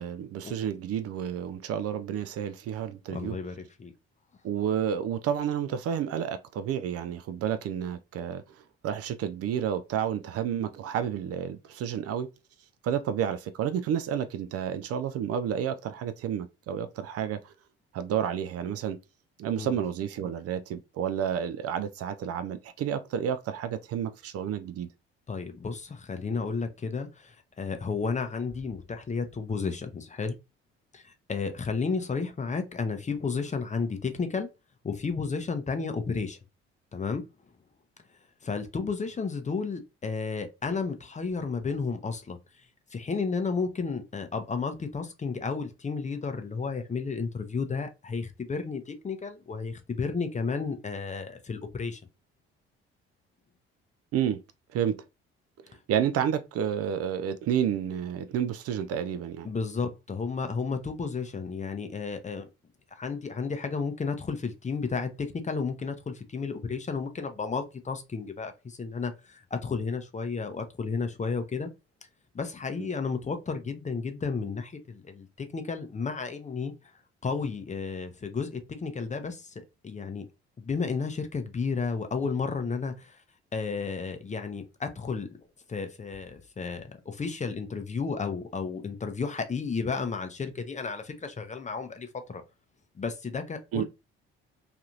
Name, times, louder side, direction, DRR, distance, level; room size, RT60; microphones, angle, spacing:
voice 1, 0.0-3.4 4.4-8.4 8.8-12.3 12.8-17.5 17.9-19.0 19.4-24.9 54.1-54.4 54.7-55.0 55.9-59.5 72.8-72.9 93.7-93.8, right 9 dB, 50° right, 0.4 m, -30 dB
voice 2, 3.1-3.9 19.6-19.8 25.3-30.4 30.9-34.5 34.8-36.4 36.9-37.2 38.4-52.0 59.4-62.5 62.9-71.7 72.3-76.7 77.2-80.3 80.6-83.2 83.5-85.3 85.7-92.4 92.9-93.8, left 5 dB, 25° left, 0.6 m, -32 dB
2.9 x 2.5 x 2.4 m
hypercardioid pair, 50°, 31 cm